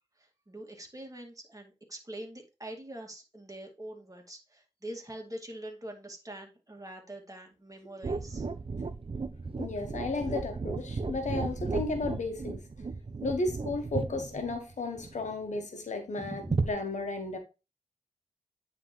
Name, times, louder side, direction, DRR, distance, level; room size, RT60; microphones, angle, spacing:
voice 1, 0.2-8.5 16.2-16.7, right 1 dB, 30° right, 2.1 m, -44 dB
sound 1, 8.0-15.6 16.5-16.7, right 4 dB, 50° right, 0.6 m, -34 dB
voice 2, 9.6-12.6 13.2-17.4, left 3 dB, 90° left, 1.3 m, -34 dB
9.4 x 3.9 x 3.1 m
cardioid pair, 45°, 12 cm